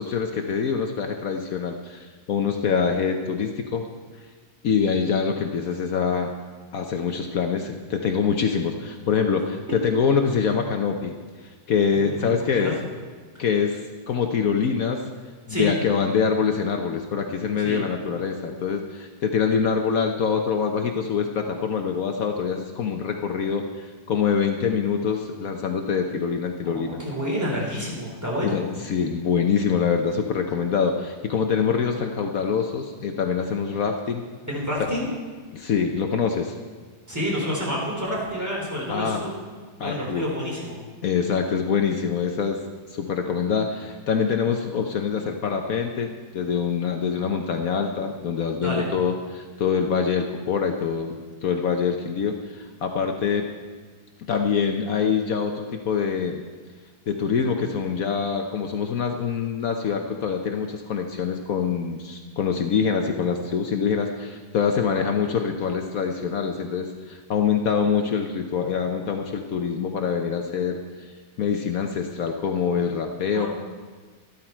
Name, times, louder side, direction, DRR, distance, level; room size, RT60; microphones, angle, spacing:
voice 1, 0.0-3.9 4.6-6.3 6.7-11.2 11.7-12.7 13.4-13.8 14.1-15.0 15.5-27.0 28.4-34.2 35.5-36.6 38.9-39.3 39.8-40.3 41.0-42.6 42.9-53.5 54.2-56.4 57.1-71.1 71.4-73.5, left 6 dB, 65° left, 4 dB, 1.2 m, -25 dB
voice 2, 11.9-12.7 15.5-15.7 17.6-17.8 26.6-28.6 34.5-35.1 37.1-39.3 39.8-40.8 48.6-48.9 73.3-73.5, equal, 10° right, -3 dB, 3.5 m, -29 dB
13.5 x 12.5 x 4.5 m, 1.5 s
omnidirectional pair, 1.7 m